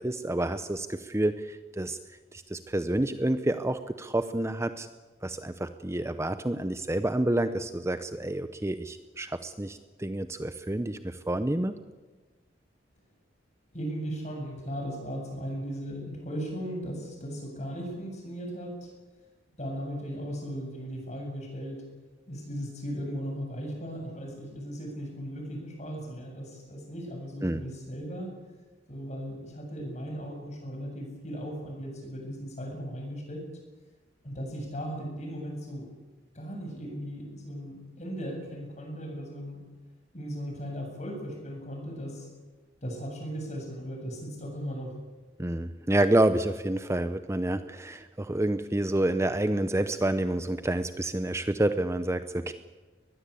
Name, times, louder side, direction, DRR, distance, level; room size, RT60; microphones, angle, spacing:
voice 1, 0.0-2.0 2.3-4.9 5.2-11.7 27.4-27.6 45.4-52.5, right 1 dB, 15° right, 10 dB, 0.7 m, -28 dB
voice 2, 13.7-18.9 19.6-21.8 22.3-28.3 28.9-33.4 34.2-35.8 36.3-39.6 40.1-42.3 42.8-44.9, equal, 40° left, 2 dB, 7.9 m, -37 dB
22.5 x 20.5 x 8.4 m, 1.3 s
head